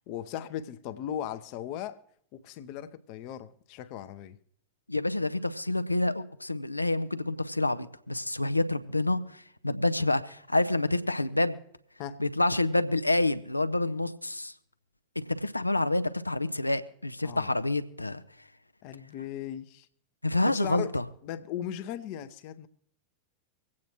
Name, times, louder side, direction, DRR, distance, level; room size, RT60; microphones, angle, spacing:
voice 1, 0.1-2.0 2.3-4.4 12.0-12.2 17.2-17.5 18.8-19.9 20.4-20.9 21.2-22.7, left 10 dB, 45° left, 0.7 m, -37 dB
voice 2, 4.9-11.6 12.2-14.5 15.2-18.2 20.2-21.0, left 2 dB, 85° left, 0.6 m, -28 dB
25.0 x 8.5 x 3.0 m
figure-of-eight pair, 90°, 0 cm